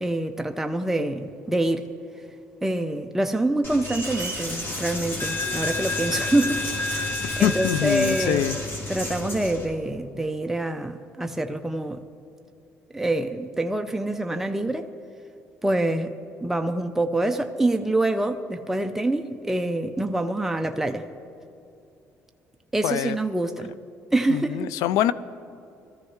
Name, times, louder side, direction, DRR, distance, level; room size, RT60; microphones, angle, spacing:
voice 1, 0.0-1.9 2.6-8.4 8.9-12.0 12.9-14.9 15.6-16.1 16.4-21.0 22.7-23.8 24.1-24.7, right 2 dB, 5° right, 6 dB, 0.6 m, -26 dB
Coin (dropping), 3.6-9.6, left 2 dB, 45° left, 3.6 m, -30 dB
sound 1, 3.8-4.5, right 7 dB, 50° right, 0.6 m, -37 dB
voice 2, 7.4-8.6 22.8-23.2 24.3-25.1, left 11 dB, 85° left, 16 dB, 0.4 m, -24 dB
20.0 x 14.0 x 3.2 m, 2.6 s
cardioid pair, 85°, 6 cm